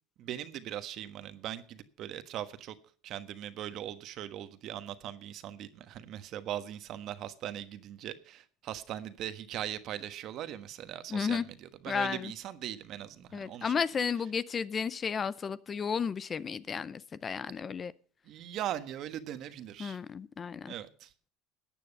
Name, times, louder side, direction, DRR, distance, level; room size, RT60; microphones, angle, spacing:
voice 1, 0.2-2.7 3.0-13.7 18.2-20.0 20.7-21.1, right 11 dB, 50° right, 1.3 m, -40 dB
voice 2, 11.1-11.5 11.9-12.3 13.3-17.9 19.8-20.7, left 6 dB, 25° left, 0.6 m, -33 dB
14.5 x 9.3 x 5.4 m
supercardioid pair, 125°, 0 cm